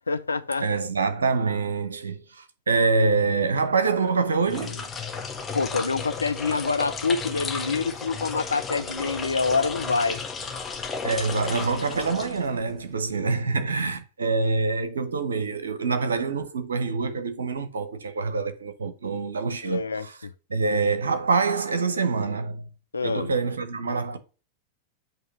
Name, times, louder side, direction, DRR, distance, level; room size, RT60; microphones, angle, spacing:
voice 1, 0.1-0.7 5.5-10.2 19.6-20.3 22.9-23.3, left 4 dB, 80° left, 0.5 m, -26 dB
voice 2, 0.6-4.9 11.0-20.2 20.5-22.6 23.0-24.2, right 4 dB, 70° right, 0.9 m, -25 dB
sound 1, 4.4-12.8, left 5 dB, 20° left, 1.0 m, -34 dB
8.0 x 3.1 x 6.1 m
figure-of-eight pair, 90°, 0 cm